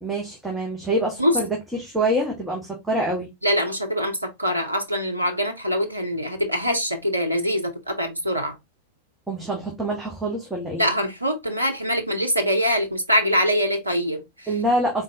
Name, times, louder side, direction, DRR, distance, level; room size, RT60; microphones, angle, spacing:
voice 1, 0.0-3.3 9.3-10.9 14.5-15.0, right 1 dB, 5° right, 1.2 m, -25 dB
voice 2, 3.4-8.6 10.8-14.5, equal, 85° right, 0.7 m, -23 dB
3.9 x 3.9 x 2.7 m
figure-of-eight pair, 90°, 0 cm